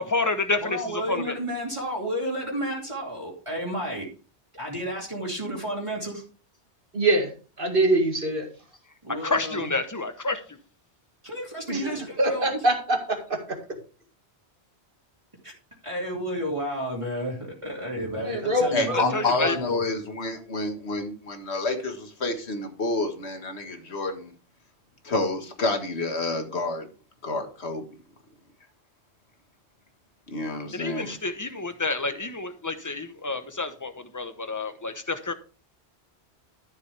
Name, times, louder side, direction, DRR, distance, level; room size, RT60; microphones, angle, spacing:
voice 1, 0.1-0.8 1.1-1.3 9.2-10.4 18.9-19.6 30.7-35.3, left 3 dB, 20° left, 9 dB, 0.9 m, -29 dB
voice 2, 0.6-4.1 4.5-6.2 9.0-9.7 11.2-12.8 15.4-15.5 15.8-19.8, equal, 25° right, -3 dB, 2.7 m, -32 dB
voice 3, 6.9-7.3 7.6-8.5 11.7-11.9 12.2-13.4 18.2-19.0, right 1 dB, 50° right, 3 dB, 2.2 m, -23 dB
voice 4, 18.7-24.3 25.0-26.9 27.2-27.8 30.3-31.2, left 2 dB, 70° left, 5 dB, 1.9 m, -28 dB
13.0 x 7.0 x 3.4 m, 0.37 s
omnidirectional pair, 1.1 m